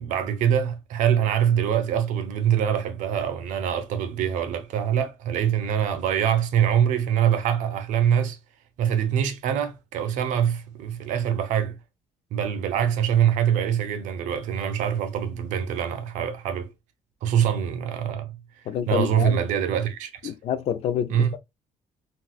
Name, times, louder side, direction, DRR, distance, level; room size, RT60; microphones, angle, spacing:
voice 1, 0.0-8.4 8.8-11.8 12.3-16.7 17.2-18.3 18.9-20.3 21.1-21.3, right 9 dB, 80° right, 0.7 m, -24 dB
voice 2, 18.7-19.4 20.2-21.4, left 9 dB, 55° left, 0.4 m, -27 dB
3.9 x 2.3 x 2.3 m
cardioid pair, 140°, 13 cm